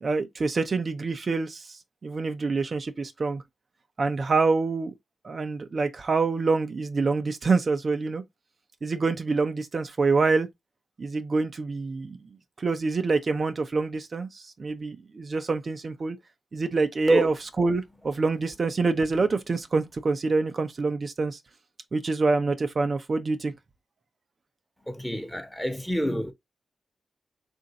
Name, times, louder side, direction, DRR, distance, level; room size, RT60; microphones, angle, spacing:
voice 1, 0.0-3.4 4.0-4.9 5.2-8.2 8.8-10.5 11.0-12.2 12.6-16.2 16.5-21.4 21.9-23.5, right 4 dB, 55° right, 0.7 m, -26 dB
voice 2, 24.9-26.3, equal, 5° left, 1.1 m, -26 dB
3.6 x 2.6 x 4.1 m
cardioid pair, 55°, 0 cm